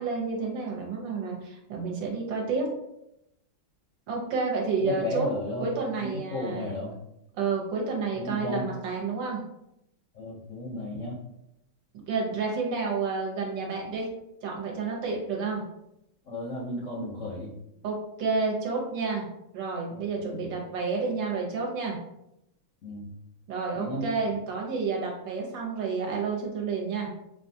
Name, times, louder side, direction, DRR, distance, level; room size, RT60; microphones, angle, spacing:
voice 1, 0.0-2.7 4.1-5.3 5.6-6.7 7.4-9.4 12.1-14.1 14.4-15.6 17.8-19.3 19.5-22.0 23.5-27.1, right 4 dB, 65° right, -1 dB, 1.6 m, -30 dB
voice 2, 4.8-5.7 6.0-6.9 8.2-8.6 10.2-11.2 16.3-17.5 19.9-20.4 22.8-23.1 23.8-24.1, left 1 dB, 65° left, -4 dB, 0.7 m, -33 dB
5.9 x 2.3 x 2.7 m, 0.83 s
omnidirectional pair, 2.3 m